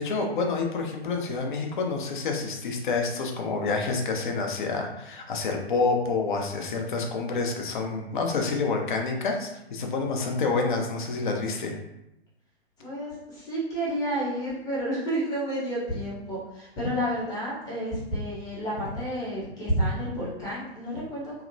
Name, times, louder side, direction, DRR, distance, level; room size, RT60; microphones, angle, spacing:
voice 1, 0.0-11.7, left 4 dB, 50° left, 2 dB, 0.5 m, -28 dB
voice 2, 12.8-21.3, equal, 10° left, -8 dB, 0.7 m, -30 dB
2.7 x 2.0 x 2.5 m, 0.87 s
figure-of-eight pair, 125°, 32 cm